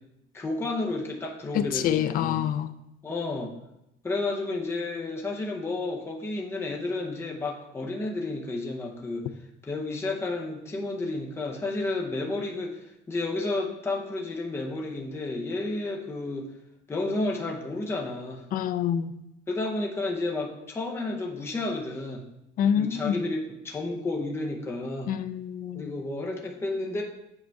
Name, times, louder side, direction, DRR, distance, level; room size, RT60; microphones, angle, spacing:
voice 1, 0.3-2.4 3.0-3.5 4.0-9.3 9.6-16.5 16.9-18.4 19.5-22.2 22.8-25.1 25.7-27.0, left 2 dB, 10° left, 0 dB, 0.7 m, -31 dB
voice 2, 1.5-2.7 18.5-19.1 22.6-23.2 25.1-25.9, left 9 dB, 45° left, 12 dB, 0.4 m, -26 dB
7.6 x 4.6 x 4.5 m, 0.85 s
cardioid pair, 180°, 20 cm